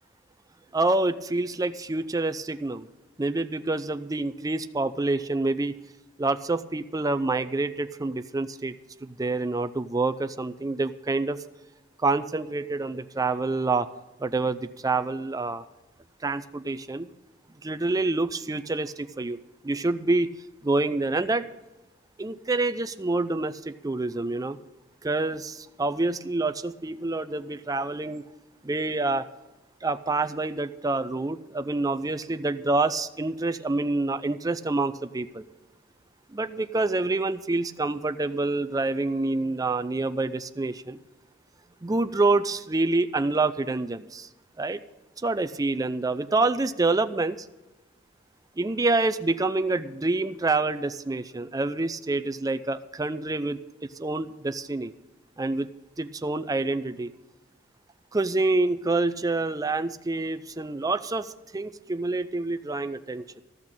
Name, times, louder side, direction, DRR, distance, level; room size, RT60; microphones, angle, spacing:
voice 1, 0.7-2.9 3.2-5.8 6.2-8.8 9.0-11.4 12.0-13.9 14.2-15.6 16.2-17.1 17.6-19.4 19.6-20.3 20.6-21.5 22.2-24.6 25.0-28.2 28.6-29.3 29.8-35.4 36.3-41.0 41.8-44.3 44.6-44.8 45.2-47.4 48.6-53.6 54.0-54.9 55.4-57.1 58.1-63.4, right 2 dB, 20° right, 11 dB, 0.5 m, -27 dB
13.5 x 6.3 x 8.8 m, 1.1 s
head